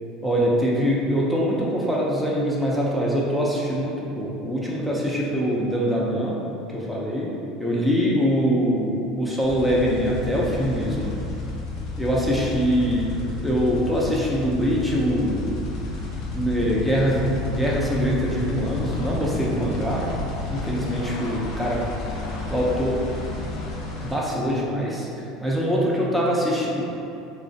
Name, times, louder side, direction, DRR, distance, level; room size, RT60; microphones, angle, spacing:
voice 1, 0.2-6.4 6.7-7.3 7.6-11.1 12.0-13.1 13.4-15.6 16.3-20.0 20.5-21.8 22.5-23.0 24.0-25.1 25.4-26.8, equal, ahead, -5 dB, 0.4 m, -23 dB
sound 1, 9.4-24.2, left 3 dB, 60° left, 0.4 m, -31 dB
2.3 x 2.1 x 2.6 m, 2.6 s
supercardioid pair, 95°, 0 cm